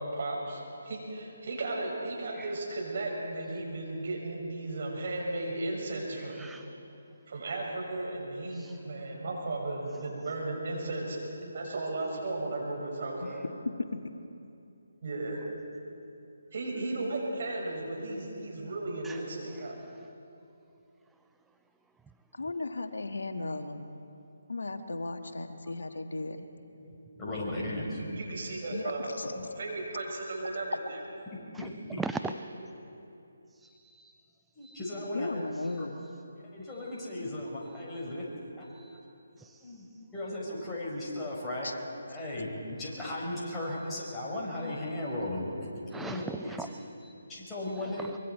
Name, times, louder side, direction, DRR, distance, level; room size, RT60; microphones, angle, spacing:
voice 1, 0.0-6.5 7.3-11.2 11.5-13.4 15.0-15.4 16.5-19.8 27.8-29.2 29.6-31.0, right 2 dB, 50° right, -1 dB, 5.9 m, -35 dB
voice 2, 6.4-6.7 8.5-8.8 19.0-19.2 31.5-31.7 32.0-32.3 34.0-34.1 34.6-35.0 35.6-35.8 36.7-37.1 37.7-38.0 38.6-39.0 39.4-39.7 44.9-45.1 45.9-47.1 47.7-48.2, right 4 dB, 5° right, 8 dB, 0.4 m, -41 dB
voice 3, 22.3-23.9 24.5-26.4 28.7-29.3 35.1-36.0 41.6-41.7, left 3 dB, 75° left, 7 dB, 1.4 m, -36 dB
voice 4, 27.2-27.9 29.3-29.5 31.6-32.0 34.5-35.4 35.8-35.9 36.5-38.3 38.6-38.7 39.6-39.8 40.1-41.7 42.1-45.5 45.9-46.6 47.3-48.1, left 1 dB, 10° left, -6 dB, 4.9 m, -36 dB
24.5 x 23.5 x 4.6 m, 2.7 s
figure-of-eight pair, 150°, 0 cm